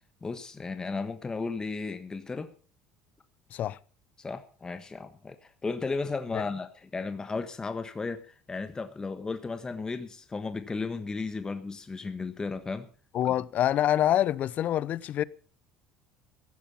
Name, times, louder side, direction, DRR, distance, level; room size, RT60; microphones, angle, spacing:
voice 1, 0.2-2.5 4.2-12.9 13.2-13.3, left 4 dB, 20° left, 1.4 m, -35 dB
voice 2, 13.1-15.2, left 11 dB, 55° left, 0.7 m, -26 dB
16.0 x 11.0 x 5.6 m
supercardioid pair, 85°, 3 cm